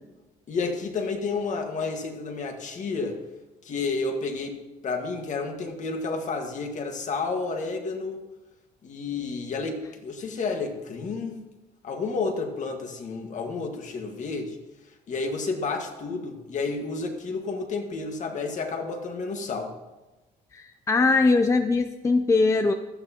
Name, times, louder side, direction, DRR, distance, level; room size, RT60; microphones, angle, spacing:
voice 1, 0.5-3.2 3.6-8.2 8.8-11.4 11.8-14.6 15.1-19.8, left 4 dB, 45° left, 4 dB, 1.7 m, -31 dB
voice 2, 20.5-22.7, left 3 dB, 15° left, 8 dB, 0.5 m, -21 dB
15.5 x 12.5 x 2.9 m, 1.1 s
cardioid pair, 110°, 17 cm